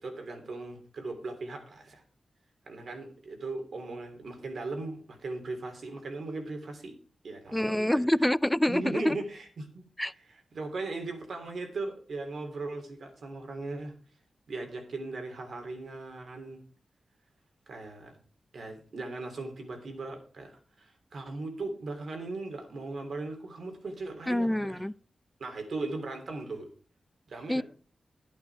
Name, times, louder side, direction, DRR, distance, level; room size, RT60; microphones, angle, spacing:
voice 1, 0.0-2.0 2.6-7.0 7.2-8.1 8.7-14.0 14.5-16.6 17.7-18.2 18.5-24.9 25.4-26.7 27.3-27.6, right 3 dB, 75° right, 3.3 m, -38 dB
voice 2, 7.5-9.2 10.0-10.1 24.3-24.9 27.5-27.6, left 1 dB, 10° left, 0.4 m, -26 dB
11.5 x 8.7 x 4.8 m
cardioid pair, 70°, 0 cm